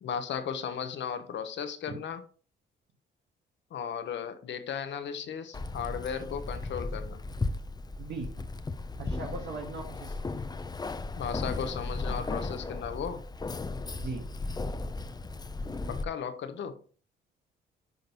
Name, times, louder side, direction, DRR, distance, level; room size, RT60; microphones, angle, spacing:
voice 1, 0.0-2.2 3.7-7.2 11.2-13.2 15.9-16.8, left 7 dB, 65° left, 1.1 m, -35 dB
Keys jangling, 5.5-16.0, left 3 dB, 20° left, 0.6 m, -36 dB
voice 2, 8.0-8.4 9.0-10.1 14.0-14.2, right 3 dB, 60° right, 1.5 m, -38 dB
10.5 x 3.9 x 3.0 m
cardioid pair, 90°, 20 cm